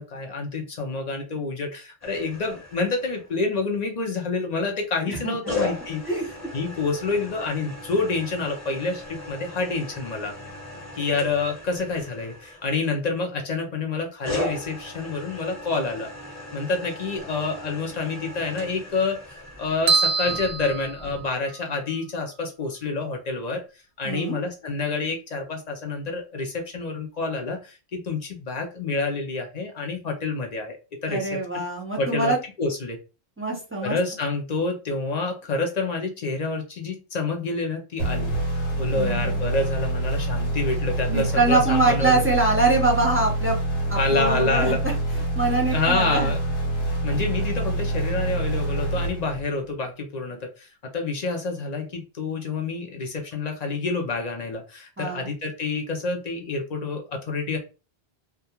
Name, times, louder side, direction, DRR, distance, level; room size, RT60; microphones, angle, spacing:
voice 1, 0.0-6.0 6.5-10.3 10.9-16.1 16.5-23.6 24.0-31.6 32.0-33.0 33.8-38.3 38.8-42.2 43.9-44.8 45.7-46.4 47.0-57.6, left 3 dB, 55° left, 3 dB, 0.5 m, -28 dB
sound 1, 2.0-3.5 5.5-13.3 14.2-21.3, left 2 dB, 15° left, 0.9 m, -37 dB
voice 2, 5.1-5.7 6.1-6.2 24.0-24.4 31.1-32.4 33.4-34.0 38.9-39.5 41.1-43.6 43.9-44.8 45.3-46.3 55.0-55.3, right 3 dB, 15° right, -2 dB, 0.6 m, -24 dB
sound 2, 19.9-21.6, right 4 dB, 85° right, 0.8 m, -25 dB
sound 3, 38.0-49.7, right 2 dB, 85° left, 1.1 m, -26 dB
2.2 x 2.2 x 2.9 m, 0.32 s
omnidirectional pair, 1.0 m